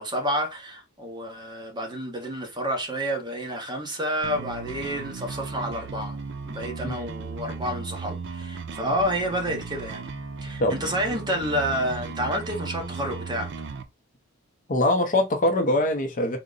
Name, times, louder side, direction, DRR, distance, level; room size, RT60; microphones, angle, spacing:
voice 1, 0.0-6.2 6.4-10.1 10.4-13.5, equal, 20° right, 0.9 m, -29 dB
sound 1, 4.2-13.8, right 4 dB, 55° right, 0.5 m, -36 dB
voice 2, 14.7-16.4, left 1 dB, 40° left, 0.6 m, -23 dB
3.8 x 2.1 x 3.8 m
head